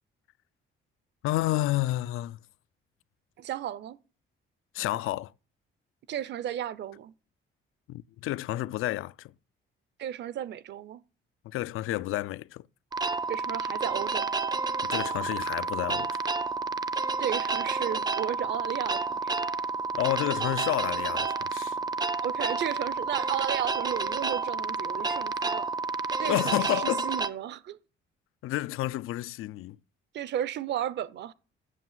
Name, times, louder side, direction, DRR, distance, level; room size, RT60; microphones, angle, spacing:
voice 1, 1.2-2.4 4.7-5.3 7.9-9.3 11.4-12.7 14.8-16.2 19.9-21.8 26.3-27.1 28.4-29.8, left 16 dB, 90° left, 0.5 m, -30 dB
voice 2, 3.4-4.0 6.1-7.1 10.0-11.0 13.3-14.3 17.2-19.5 22.2-25.7 26.2-27.8 30.1-31.3, right 11 dB, 55° right, 0.7 m, -34 dB
sound 1, 12.9-27.3, right 4 dB, 20° right, 0.5 m, -30 dB
8.3 x 7.7 x 7.4 m
cardioid pair, 175°, 21 cm